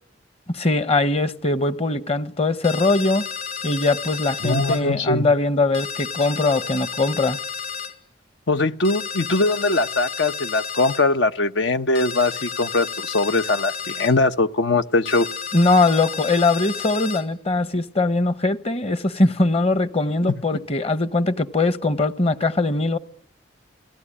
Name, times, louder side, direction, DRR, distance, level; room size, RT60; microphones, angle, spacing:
voice 1, 0.5-3.3 3.6-7.4 15.5-23.0, left 2 dB, 35° left, 1.0 m, -21 dB
sound 1, 2.6-4.8 5.7-7.9 8.8-11.0 12.0-14.1 15.1-17.2, left 6 dB, 55° left, 3.4 m, -32 dB
voice 2, 4.4-5.3 8.5-15.3 20.2-20.3, left 2 dB, 75° left, 1.0 m, -21 dB
28.5 x 18.0 x 10.0 m
head